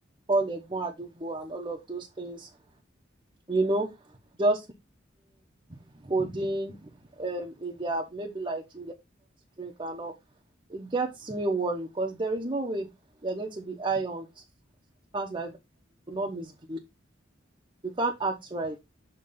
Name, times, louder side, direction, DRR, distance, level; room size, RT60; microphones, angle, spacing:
voice 1, 0.3-2.5 3.5-3.9 4.4-4.6 5.7-5.8 6.0-6.9 7.2-8.9 9.6-10.1 10.7-12.9 13.2-14.3 15.1-15.5 16.1-16.8 17.8-18.8, right 2 dB, 25° right, 1.0 m, -30 dB
6.7 x 3.3 x 5.5 m
head